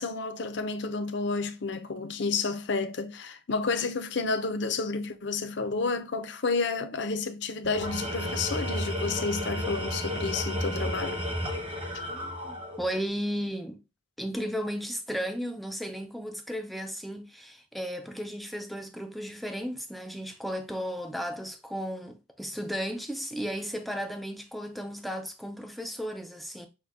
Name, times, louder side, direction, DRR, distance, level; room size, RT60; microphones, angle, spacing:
voice 1, 0.0-11.2, left 4 dB, 60° left, 0.6 m, -30 dB
Tools, 7.6-13.0, equal, 30° right, 0.9 m, -33 dB
voice 2, 12.1-13.8 14.2-26.7, equal, ahead, 0.4 m, -35 dB
6.5 x 2.2 x 3.4 m
head